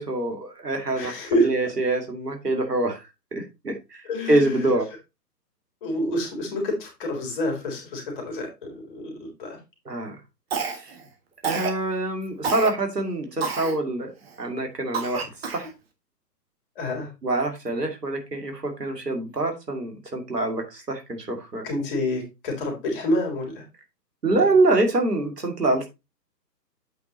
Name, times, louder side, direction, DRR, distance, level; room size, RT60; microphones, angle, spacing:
voice 1, 0.0-3.0 3.3-4.9 9.9-10.2 10.6-10.9 11.4-14.1 14.4-15.3 15.5-15.7 17.2-21.7 24.2-25.9, right 2 dB, 70° right, 4 dB, 2.6 m, -25 dB
voice 2, 0.9-1.5 4.1-4.5 5.8-9.6 16.8-17.1 21.6-23.6 24.3-24.4, left 1 dB, 30° left, 2 dB, 3.4 m, -28 dB
Cough, 10.5-11.0 11.4-11.8 12.4-12.7 13.4-13.8 14.3-14.4 14.9-15.7, right 5 dB, 40° right, 1.6 m, -29 dB
8.2 x 4.8 x 4.1 m, 0.24 s
figure-of-eight pair, 130°, 49 cm